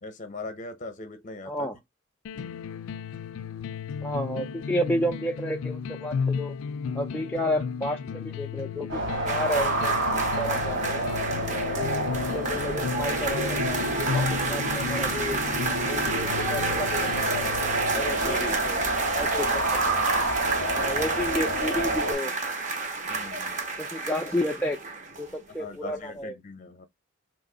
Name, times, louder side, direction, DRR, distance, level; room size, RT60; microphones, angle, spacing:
voice 1, 0.0-1.7 2.3-2.7 18.0-18.7 20.7-20.8 23.1-23.6 25.6-26.9, left 2 dB, 40° left, 0.7 m, -40 dB
sound 1, 2.2-18.2, left 6 dB, 90° left, 0.3 m, -34 dB
voice 2, 4.0-6.5 6.9-11.1 11.8-12.1 12.3-15.4 15.9-17.3 17.9-18.8 19.1-19.6 20.7-22.3 23.8-24.8 25.2-26.4, left 1 dB, 10° left, 0.3 m, -31 dB
sound 2, 8.9-22.1, right 1 dB, 70° right, 1.7 m, -29 dB
sound 3, 9.3-25.5 25.8-26.0, right 3 dB, 40° right, 0.7 m, -30 dB
3.0 x 2.5 x 3.8 m
head